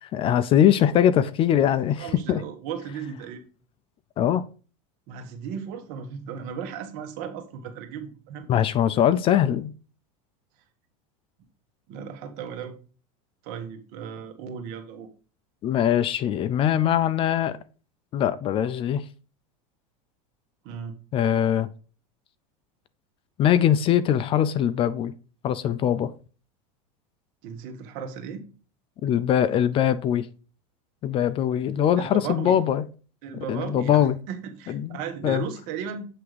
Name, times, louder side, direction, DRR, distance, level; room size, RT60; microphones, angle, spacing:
voice 1, 0.0-2.4 4.2-4.4 8.5-9.7 15.6-17.6 18.1-19.0 21.1-21.7 23.4-25.1 25.4-26.1 29.0-30.3 31.0-32.8 33.5-34.2 34.7-34.9 35.2-35.5, left 10 dB, 30° left, 0.4 m, -22 dB
voice 2, 2.0-3.4 5.1-8.5 11.9-12.7 13.4-15.1 20.6-20.9 27.4-28.4 32.0-32.6 33.2-36.1, right 7 dB, 55° right, 1.6 m, -36 dB
8.0 x 3.5 x 4.8 m
supercardioid pair, 135°, 17 cm